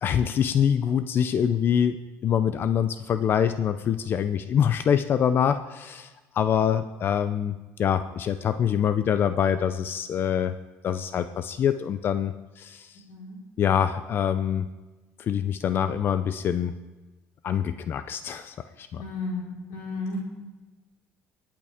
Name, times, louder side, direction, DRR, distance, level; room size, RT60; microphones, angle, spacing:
voice 1, 0.0-6.1 6.3-10.5 10.8-12.9 13.6-14.7 15.2-16.7 17.4-19.0, left 8 dB, 45° left, 11 dB, 0.5 m, -25 dB
voice 2, 19.0-20.2, left 3 dB, 85° left, -4 dB, 4.7 m, -33 dB
24.0 x 8.8 x 3.6 m, 1.2 s
cardioid pair, 115°, 5 cm